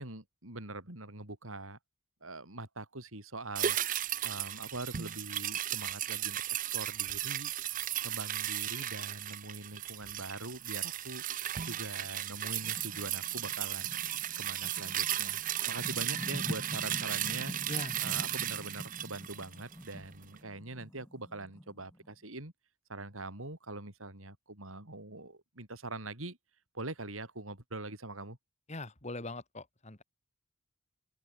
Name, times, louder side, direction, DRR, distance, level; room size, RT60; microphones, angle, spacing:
voice 1, 0.0-1.8 2.2-3.8 4.2-6.4 6.7-7.5 8.0-11.2 11.6-13.9 14.4-17.6 18.0-22.5 22.9-26.4 26.7-28.4, right 2 dB, 85° right, 5.5 m, -43 dB
sound 1, 3.6-20.1 20.4-20.5, right 12 dB, 40° right, 0.6 m, -35 dB
sound 2, 12.0-22.1, equal, 15° left, 2.5 m, -46 dB
voice 2, 28.7-30.0, left 2 dB, 35° left, 2.7 m, -41 dB
open air
head